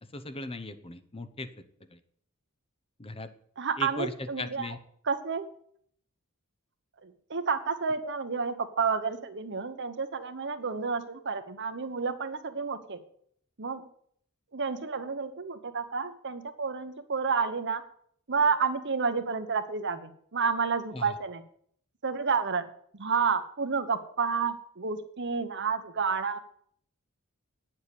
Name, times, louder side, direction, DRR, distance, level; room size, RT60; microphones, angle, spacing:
voice 1, 0.1-1.5 1.9-2.0 3.0-3.3 3.8-4.8 20.9-21.1, left 2 dB, 25° left, 10 dB, 0.8 m, -38 dB
voice 2, 3.6-4.7 5.0-5.5 7.0-13.0 13.6-13.8 14.5-17.8 18.3-21.4 22.0-26.4, right 5 dB, 55° right, 9 dB, 1.1 m, -30 dB
9.7 x 7.3 x 8.4 m, 0.64 s
head